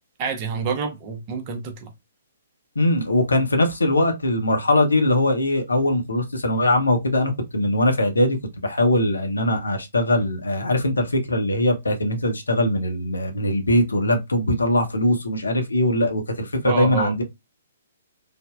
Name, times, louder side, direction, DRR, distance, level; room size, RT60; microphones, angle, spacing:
voice 1, 0.2-1.9 16.6-17.1, right 5 dB, 30° right, 0.6 m, -27 dB
voice 2, 2.8-8.4 8.6-17.2, left 1 dB, 70° left, 0.8 m, -21 dB
3.3 x 2.1 x 2.3 m
figure-of-eight pair, 125°, 0 cm